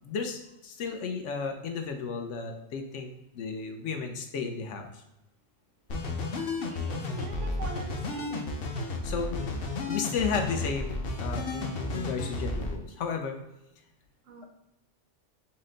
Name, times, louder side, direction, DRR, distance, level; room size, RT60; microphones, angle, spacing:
voice 1, 0.0-5.0 9.0-9.5 9.9-13.4, left 5 dB, 80° left, 4 dB, 0.9 m, -34 dB
sound 1, 5.9-12.8, left 2 dB, 60° left, 0.8 m, -33 dB
voice 2, 6.3-8.5 14.3-14.4, right 5 dB, 85° right, 4 dB, 1.1 m, -44 dB
5.8 x 2.1 x 3.8 m, 0.90 s
omnidirectional pair, 1.2 m